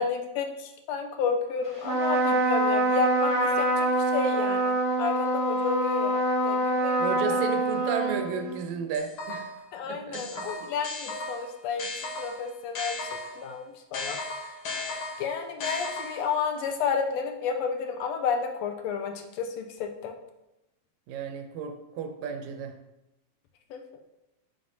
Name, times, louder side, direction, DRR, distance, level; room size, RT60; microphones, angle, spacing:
voice 1, 0.0-7.4 9.7-11.9 12.2-13.0 13.4-14.2 15.2-20.1 23.7-23.8, left 6 dB, 80° left, 5 dB, 1.6 m, -31 dB
Trumpet, 1.8-8.6, right 1 dB, 15° right, 1.1 m, -25 dB
voice 2, 7.0-9.6 9.8-10.5 21.1-22.8, right 6 dB, 75° right, 6 dB, 1.9 m, -33 dB
sound 1, 8.9-9.7 10.1-13.5 13.9-16.4, left 3 dB, 60° left, 2.0 m, -36 dB
7.7 x 6.7 x 2.7 m, 0.93 s
omnidirectional pair, 3.4 m